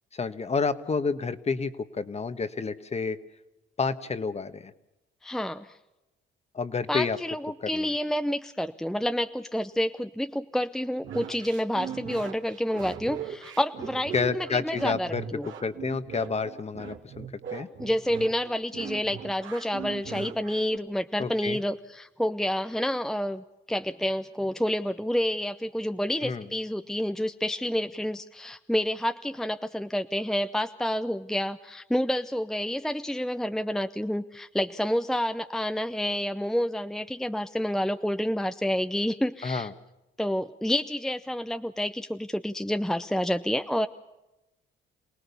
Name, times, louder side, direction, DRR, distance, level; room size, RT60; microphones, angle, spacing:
voice 1, 0.1-3.2 3.8-4.7 6.5-7.2 7.6-7.9 14.1-15.2 15.6-17.7 21.2-21.6 26.2-26.5 39.4-39.7, left 4 dB, 35° left, 12 dB, 1.4 m, -29 dB
voice 2, 5.2-5.7 6.9-15.5 17.8-39.7 40.2-43.9, equal, ahead, 9 dB, 0.7 m, -29 dB
sound 1, 11.0-20.8, right 8 dB, 75° right, 2.8 m, -39 dB
27.5 x 18.0 x 7.0 m, 0.96 s
cardioid pair, 90°, 20 cm